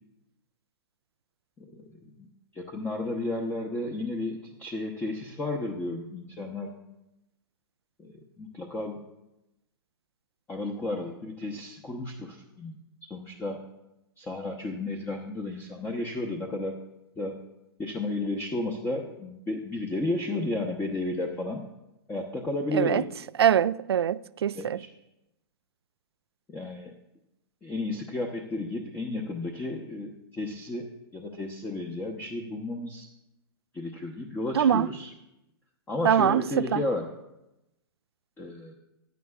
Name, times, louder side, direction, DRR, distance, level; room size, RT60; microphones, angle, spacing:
voice 1, 1.6-2.3 2.5-6.7 8.0-9.0 10.5-12.7 13.1-13.7 14.2-16.8 17.2-17.4 17.8-21.7 22.1-23.1 24.5-24.9 26.5-26.9 27.6-33.1 33.7-35.1 35.9-37.1 38.4-38.7, left 2 dB, 15° left, 0.9 m, -33 dB
voice 2, 23.4-24.8 34.6-34.9 36.0-36.4 36.7-36.8, right 9 dB, 85° right, 0.4 m, -23 dB
16.0 x 10.5 x 2.4 m
hypercardioid pair, 130°, 13 cm